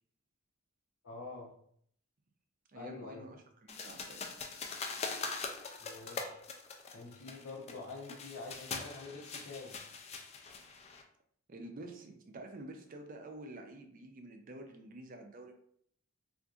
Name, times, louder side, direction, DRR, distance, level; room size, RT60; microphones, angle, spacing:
voice 1, 1.0-1.5 2.7-3.3 5.8-6.4 6.9-9.8, left 3 dB, 80° left, -3 dB, 0.6 m, -46 dB
voice 2, 2.7-4.3 11.5-15.5, right 2 dB, 40° right, 4 dB, 0.4 m, -49 dB
sound 1, 3.7-11.0, left 4 dB, 30° left, 0.3 m, -42 dB
3.8 x 2.5 x 2.3 m, 0.64 s
head